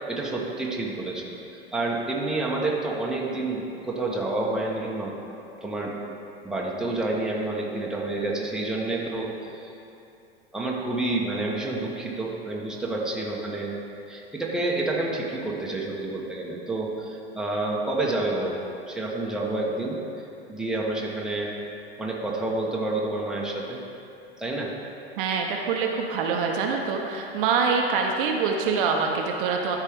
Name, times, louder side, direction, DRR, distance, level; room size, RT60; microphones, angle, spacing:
voice 1, 0.1-1.3 1.7-5.9 6.4-9.7 10.5-13.7 14.1-18.6 18.9-20.0 20.5-21.5 22.0-23.8 24.4-24.7, right 2 dB, ahead, -4 dB, 1.2 m, -29 dB
voice 2, 25.2-29.8, right 5 dB, 55° right, 1 dB, 0.9 m, -25 dB
13.0 x 4.6 x 3.6 m, 2.7 s
figure-of-eight pair, 90°, 32 cm